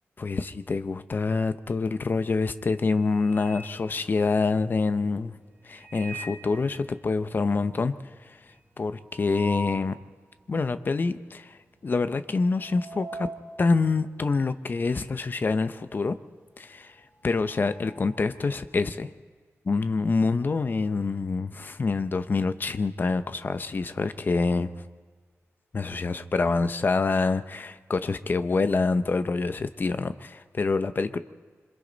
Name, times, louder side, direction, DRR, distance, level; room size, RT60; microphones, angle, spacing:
voice 1, 0.2-5.4 5.6-7.9 8.2-8.4 8.8-10.0 10.5-13.3 13.6-16.2 16.6-16.9 17.2-19.1 19.6-24.7 25.7-31.2, left 4 dB, 40° left, 11 dB, 0.9 m, -26 dB
sound 1, 1.8-2.2 2.6-4.7 5.6-6.6 7.0-7.1 7.3-7.4 7.8-9.9 10.4-10.5 11.3-11.6 11.9-15.2 15.5-18.4, right 1 dB, 35° right, 4.6 m, -42 dB
27.5 x 25.5 x 4.1 m, 1.5 s
wide cardioid pair, 160°, 5 cm